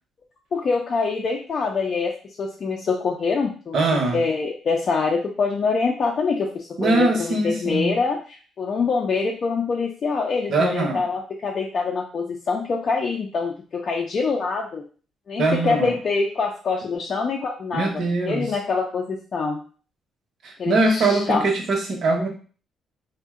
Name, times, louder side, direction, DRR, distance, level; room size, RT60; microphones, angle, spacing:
voice 1, 0.5-2.1 2.4-3.8 4.1-14.8 15.3-19.6 20.6-21.4, left 4 dB, 50° left, 0 dB, 0.4 m, -25 dB
voice 2, 3.7-4.2 6.8-8.0 10.5-11.0 15.4-16.0 17.7-18.5 20.4-22.3, right 2 dB, 65° right, 2 dB, 0.8 m, -22 dB
2.6 x 2.1 x 3.5 m, 0.39 s
cardioid pair, 90°, 0 cm